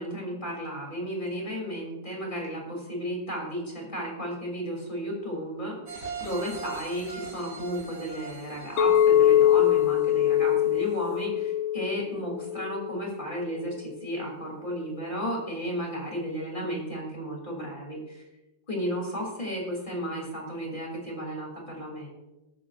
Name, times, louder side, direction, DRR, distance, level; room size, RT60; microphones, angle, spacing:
voice 1, 0.0-5.7 6.2-18.2 18.7-22.1, equal, 25° left, -1 dB, 3.3 m, -33 dB
sound 1, 5.9-10.6 11.0-11.1, right 5 dB, 30° right, 3.2 m, -41 dB
Chink clink, 8.8-13.0, left 11 dB, 85° left, 1.5 m, -23 dB
20.5 x 9.8 x 2.5 m, 1.0 s
omnidirectional pair, 2.2 m